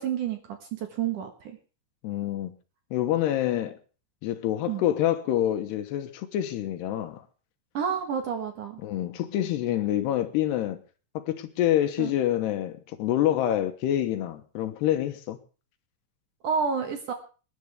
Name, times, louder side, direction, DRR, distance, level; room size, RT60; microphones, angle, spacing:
voice 1, 0.0-1.6 4.7-4.8 7.7-8.8 12.0-12.1 16.4-17.1, right 7 dB, 60° right, 2.5 m, -29 dB
voice 2, 2.0-2.5 2.9-3.8 4.2-7.2 8.8-10.8 11.1-15.4, left 12 dB, 75° left, 3.1 m, -27 dB
26.5 x 11.0 x 3.5 m
omnidirectional pair, 5.0 m